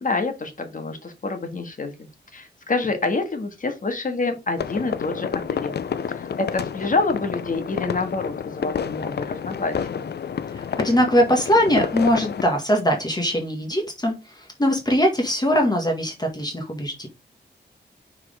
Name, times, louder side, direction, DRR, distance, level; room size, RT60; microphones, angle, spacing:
voice 1, 0.0-5.7 6.1-10.1, left 3 dB, 45° left, 6 dB, 1.6 m, -27 dB
sound 1, 4.6-12.4, left 7 dB, 65° left, 0.5 m, -29 dB
voice 2, 10.5-17.1, equal, 20° left, 2 dB, 1.7 m, -21 dB
6.0 x 4.8 x 3.5 m, 0.24 s
wide cardioid pair, 115°, 18 cm